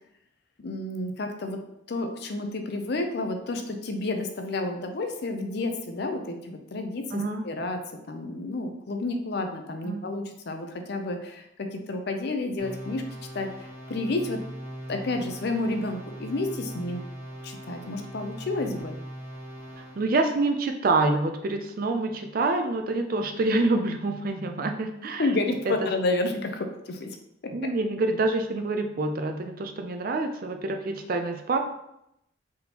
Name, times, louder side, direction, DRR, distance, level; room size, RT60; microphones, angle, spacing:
voice 1, 0.6-1.6 1.9-7.8 8.1-13.0 13.3-13.5 13.9-14.4 14.9-17.0 17.4-18.9 25.2-27.1 27.4-27.5, left 2 dB, 55° left, 5 dB, 0.5 m, -30 dB
voice 2, 7.1-7.5 9.8-10.0 20.0-25.3 25.8-25.9 27.5-31.6, right 2 dB, 45° right, 5 dB, 0.4 m, -26 dB
sound 1, 12.6-20.1, equal, 10° left, 1.6 m, -40 dB
4.1 x 3.6 x 2.9 m, 0.80 s
head